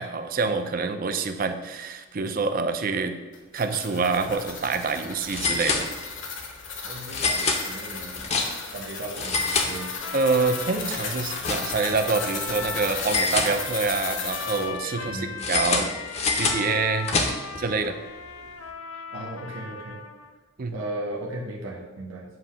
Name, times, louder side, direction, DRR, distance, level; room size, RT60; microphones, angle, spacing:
voice 1, 0.0-3.2 3.5-5.9 10.1-15.9 16.3-17.1 17.6-18.0 20.6-20.8, right 4 dB, 40° right, 8 dB, 0.5 m, -26 dB
sound 1, 3.3-14.7, left 5 dB, 60° left, 1.0 m, -35 dB
sound 2, 4.3-4.4 4.6-4.7 5.3-6.3 7.1-8.8 9.1-10.3 10.6-12.0 13.0-14.1 15.4-17.6, left 4 dB, 30° left, 0.7 m, -27 dB
voice 2, 6.8-8.3 8.6-9.9 15.0-15.6 16.3-16.5 18.4-18.5 19.1-20.0 20.7-22.2, right 1 dB, 65° right, -2 dB, 0.9 m, -37 dB
sound 3, 9.3-20.3, left 5 dB, 80° left, 0.6 m, -38 dB
7.9 x 2.7 x 5.6 m, 1.2 s
head